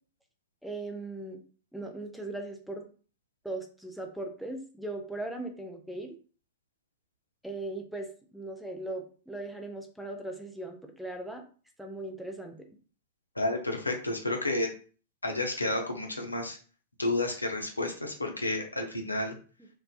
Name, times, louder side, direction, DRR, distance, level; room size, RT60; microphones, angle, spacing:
voice 1, 0.6-1.4 1.7-2.8 3.4-6.2 7.4-11.4 11.8-12.6, right 2 dB, ahead, 3 dB, 0.5 m, -38 dB
voice 2, 13.4-14.7 15.2-16.6 17.0-19.3, left 2 dB, 90° left, 3 dB, 0.5 m, -31 dB
2.5 x 2.3 x 2.3 m, 0.39 s
figure-of-eight pair, 100°, 0 cm